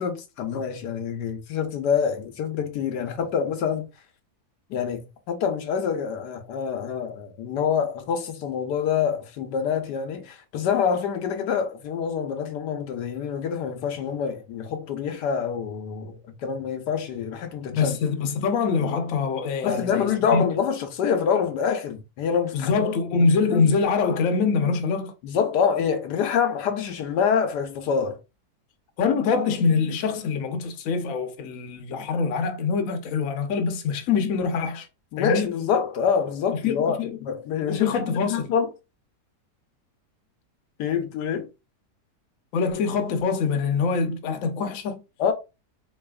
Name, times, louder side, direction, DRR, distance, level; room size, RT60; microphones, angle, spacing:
voice 1, 0.0-3.9 4.7-18.0 19.6-22.8 23.4-23.6 25.2-28.2 35.1-38.0 38.3-38.7 40.8-41.5 45.2-45.3, left 7 dB, 80° left, 1.3 m, -26 dB
voice 2, 17.7-20.4 22.5-25.2 29.0-34.9 35.2-35.5 36.6-37.2 37.7-38.5 42.5-45.0, left 5 dB, 60° left, 1.0 m, -24 dB
3.9 x 3.3 x 2.3 m
omnidirectional pair, 1.8 m